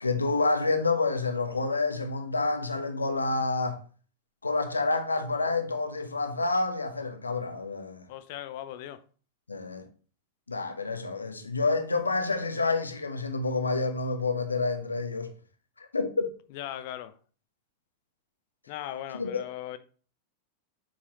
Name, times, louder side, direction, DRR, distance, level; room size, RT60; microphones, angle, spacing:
voice 1, 0.0-3.8 4.4-8.0 9.5-9.9 10.5-15.3 15.8-16.3 19.1-19.4, left 3 dB, 80° left, 1.0 m, -28 dB
voice 2, 8.1-9.0 16.5-17.2 18.7-19.8, left 12 dB, 50° left, 0.7 m, -38 dB
7.5 x 5.6 x 3.0 m
figure-of-eight pair, 90°, 0 cm